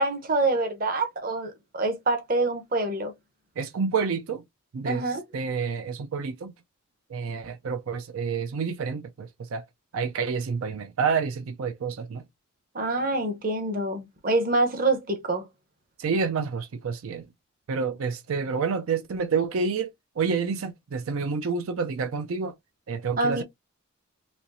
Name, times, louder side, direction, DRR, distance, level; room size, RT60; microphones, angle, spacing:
voice 1, 0.0-3.1 4.8-5.2 12.7-15.5 23.2-23.4, right 2 dB, 40° right, 0.8 m, -26 dB
voice 2, 3.6-4.4 4.7-5.0 5.3-6.5 7.1-9.6 9.9-12.2 16.0-17.2 17.7-19.9 20.2-22.5 22.9-23.4, right 5 dB, 75° right, 0.4 m, -28 dB
4.3 x 2.9 x 2.5 m
head